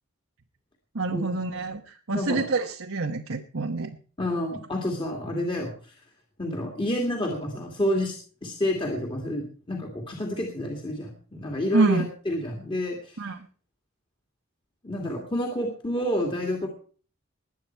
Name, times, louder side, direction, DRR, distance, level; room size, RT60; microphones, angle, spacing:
voice 1, 0.9-3.9 11.7-12.1 13.2-13.5, right 3 dB, 85° right, 2 dB, 1.2 m, -26 dB
voice 2, 2.1-2.4 4.2-5.9 6.4-13.2 14.8-16.7, left 1 dB, 25° left, 1 dB, 2.4 m, -29 dB
20.5 x 8.8 x 4.6 m, 0.41 s
head